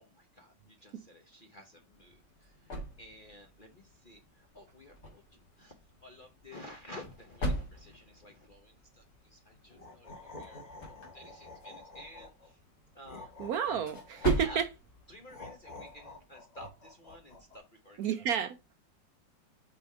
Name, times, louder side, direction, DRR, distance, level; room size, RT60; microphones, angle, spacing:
voice 1, 0.0-5.2 5.6-12.6 12.9-13.5 14.4-14.6 15.1-18.2, left 1 dB, 40° left, 0.8 m, -53 dB
sound 1, 1.8-16.3, equal, 60° left, 2.6 m, -42 dB
sound 2, 9.7-12.5 13.0-14.7 15.3-17.6, left 3 dB, 25° left, 1.1 m, -49 dB
voice 2, 13.4-14.7 18.0-18.6, right 8 dB, 70° right, 0.9 m, -30 dB
5.6 x 4.2 x 4.7 m
omnidirectional pair, 2.0 m